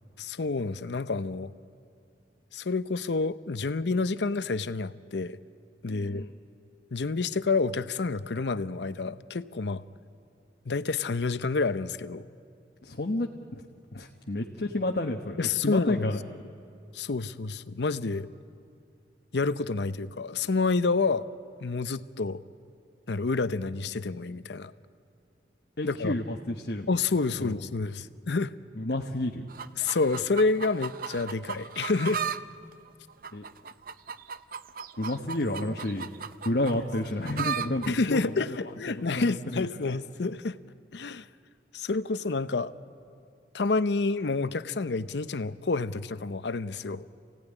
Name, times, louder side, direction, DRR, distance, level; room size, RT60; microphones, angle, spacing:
voice 1, 0.2-1.5 2.5-5.4 5.8-6.3 6.9-9.8 10.7-12.2 15.4-16.1 16.9-18.3 19.3-21.2 21.6-22.4 23.1-24.7 25.8-26.2 26.9-28.5 29.8-32.2 36.8-36.9 37.9-40.6 40.9-41.3 41.7-42.7 43.5-47.0, left 3 dB, 80° left, 14 dB, 0.7 m, -28 dB
voice 2, 5.9-6.3 12.8-13.6 13.9-15.4 15.6-16.2 25.8-26.9 27.4-27.6 28.8-29.4 33.3-33.4 35.0-36.1 36.4-38.6 38.9-40.0, left 1 dB, 60° left, 2 dB, 1.1 m, -31 dB
sound 1, 29.5-32.4 32.7-37.9 38.7-38.8, right 6 dB, 50° right, 0.6 m, -36 dB
27.5 x 16.5 x 10.0 m, 2.5 s
head